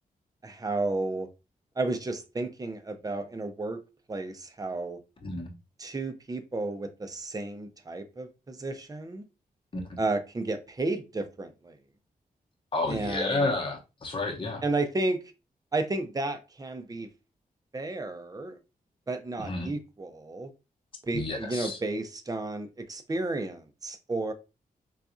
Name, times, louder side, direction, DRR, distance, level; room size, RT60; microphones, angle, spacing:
voice 1, 0.4-1.3 1.8-3.8 4.1-5.0 5.8-9.2 10.0-11.7 12.9-13.5 14.6-15.2 15.7-17.1 17.7-18.6 19.1-20.5 21.0-24.3, right 2 dB, 25° right, 0.6 m, -32 dB
voice 2, 12.7-14.6 19.4-19.7 21.1-21.8, left 2 dB, 35° left, 0.8 m, -31 dB
3.9 x 2.4 x 2.5 m
cardioid pair, 75°, 15 cm